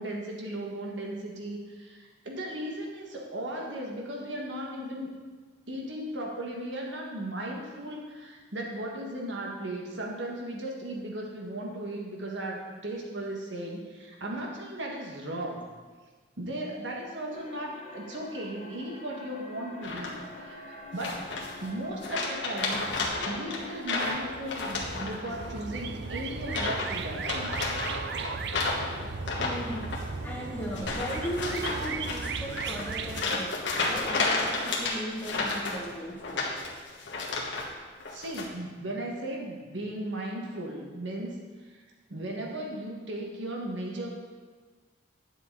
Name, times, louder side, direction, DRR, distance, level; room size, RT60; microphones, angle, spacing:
voice 1, 0.0-5.1 5.7-15.6 16.4-21.2 21.6-22.9 23.3-27.7 38.1-41.4 41.6-41.8 42.1-44.1, right 1 dB, 80° right, -1 dB, 1.7 m, -36 dB
sound 1, 17.3-25.7, left 2 dB, 35° left, 0.9 m, -46 dB
sound 2, 19.8-20.4 21.0-21.7 22.0-25.5 25.7-26.0 26.5-26.9 27.2-37.7 38.0-38.5, left 3 dB, 75° left, 1.4 m, -32 dB
sound 3, 25.3-33.2, right 4 dB, 60° right, 0.5 m, -36 dB
voice 2, 29.4-33.5 33.9-36.5, equal, 10° left, -3 dB, 1.1 m, -37 dB
10.0 x 7.0 x 4.0 m, 1.4 s
head